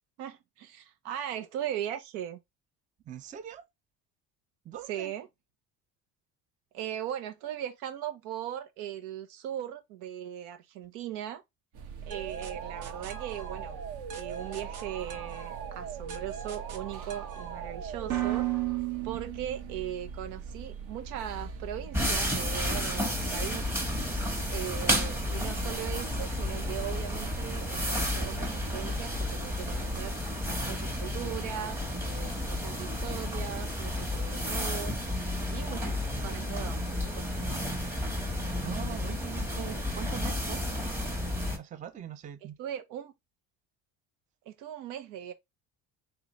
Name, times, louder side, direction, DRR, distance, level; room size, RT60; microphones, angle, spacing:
voice 1, 0.2-2.4 4.8-5.3 6.7-11.4 12.1-13.8 14.1-18.5 19.0-23.7 24.5-30.2 30.6-35.0 35.5-37.6 42.4-43.1 44.5-45.3, right 11 dB, 90° right, 0.9 m, -39 dB
voice 2, 3.1-3.6 4.7-5.1 38.3-40.7 41.6-42.6, right 9 dB, 20° right, 0.4 m, -42 dB
sound 1, 11.7-30.1, right 6 dB, 70° right, 1.2 m, -43 dB
sound 2, 12.1-19.9, right 12 dB, 50° right, 1.0 m, -36 dB
sound 3, 21.9-41.6, left 1 dB, 5° right, 1.0 m, -32 dB
3.8 x 3.3 x 3.0 m
cardioid pair, 130°, 38 cm